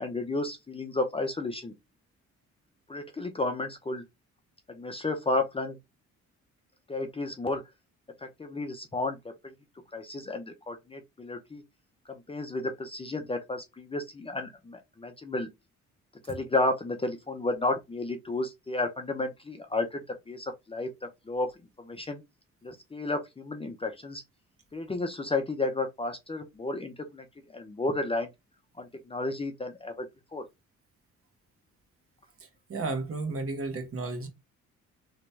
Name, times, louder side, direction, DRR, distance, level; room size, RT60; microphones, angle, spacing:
voice 1, 0.0-1.7 2.9-4.0 4.7-5.8 6.9-7.6 8.2-9.2 9.4-9.5 9.9-11.6 12.1-15.5 16.3-20.0 20.3-20.9 21.3-21.5 21.8-22.2 22.6-24.2 24.7-27.2 27.5-28.3 28.8-30.1 30.3-30.4, left 2 dB, 20° left, 0.6 m, -32 dB
voice 2, 32.4-34.3, right 3 dB, 45° right, 1.3 m, -33 dB
3.0 x 2.8 x 3.3 m
cardioid pair, 90°, 30 cm